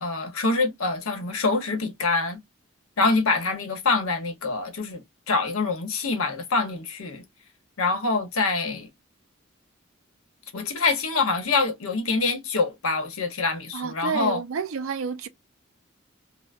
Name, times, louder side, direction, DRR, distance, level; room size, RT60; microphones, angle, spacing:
voice 1, 0.0-2.4 3.0-7.2 7.8-8.9 10.5-14.4, left 3 dB, 90° left, 0.9 m, -25 dB
voice 2, 13.7-15.3, right 5 dB, 70° right, 0.5 m, -29 dB
3.3 x 2.0 x 2.4 m
head